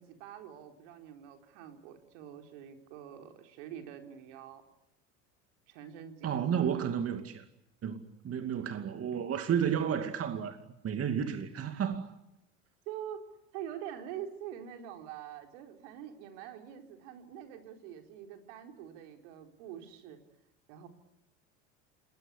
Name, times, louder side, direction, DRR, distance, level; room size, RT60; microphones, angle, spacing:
voice 1, 0.0-4.6 5.7-6.9 12.9-13.2 13.5-20.2 20.7-20.9, right 10 dB, 70° right, 4.5 m, -45 dB
voice 2, 6.2-7.4 7.8-10.6 10.8-12.1, right 8 dB, 40° right, 2.5 m, -32 dB
28.0 x 21.0 x 10.0 m
hypercardioid pair, 80°, 38 cm